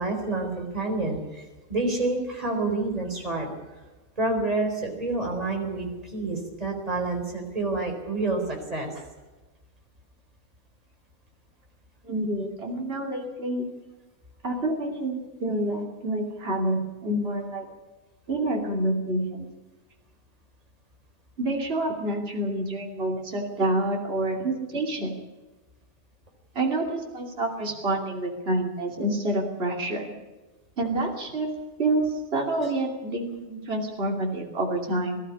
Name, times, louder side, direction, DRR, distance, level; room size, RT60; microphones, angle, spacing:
voice 1, 0.0-3.5 4.2-9.1 32.6-32.7, right 2 dB, 25° right, 2 dB, 4.2 m, -28 dB
voice 2, 12.0-13.7 14.4-17.7 18.3-19.5 21.4-25.2 26.5-30.1 30.8-31.5 31.8-35.2, right 1 dB, 45° right, 1 dB, 3.1 m, -28 dB
21.0 x 13.0 x 9.8 m, 1.2 s
omnidirectional pair, 1.4 m